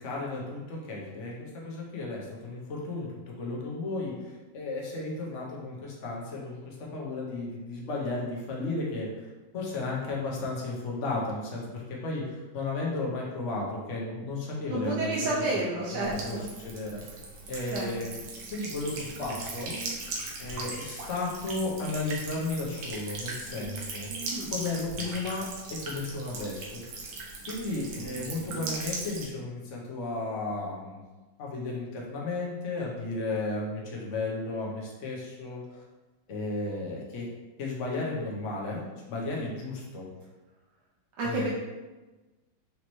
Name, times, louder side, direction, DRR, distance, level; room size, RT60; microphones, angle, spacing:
voice 1, 0.0-15.6 15.9-17.2 17.5-18.2 18.5-19.8 20.4-24.1 24.5-25.5 25.8-27.0 27.5-31.0 31.4-35.8 36.3-37.3 37.6-38.8 39.1-40.1 41.2-41.5, left 2 dB, 50° left, -3 dB, 1.0 m, -34 dB
voice 2, 14.7-16.4 17.7-17.9 24.3-24.5 41.2-41.5, right 2 dB, 70° right, -5 dB, 1.2 m, -30 dB
Buzz / Water tap faucet / Trickle dribble, 16.0-29.2, right 3 dB, 90° right, 1.6 m, -39 dB
5.2 x 2.9 x 3.0 m, 1.2 s
omnidirectional pair, 2.1 m